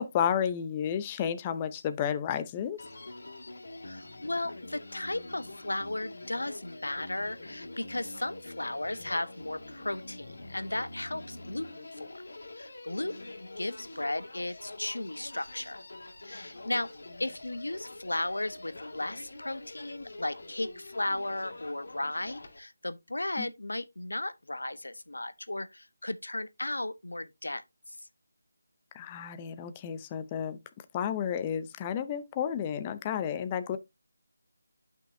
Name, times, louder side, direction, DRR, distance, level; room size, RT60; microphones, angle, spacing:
voice 1, 0.0-2.8 23.4-23.5 28.9-30.6 30.9-33.8, left 8 dB, 20° left, 0.6 m, -31 dB
Human voice, 2.8-22.6, left 2 dB, 70° left, 2.3 m, -45 dB
voice 2, 3.8-12.2 12.6-15.8 16.2-16.9 17.2-27.6, left 1 dB, 90° left, 0.9 m, -35 dB
10.0 x 5.8 x 2.6 m
figure-of-eight pair, 165°, 0 cm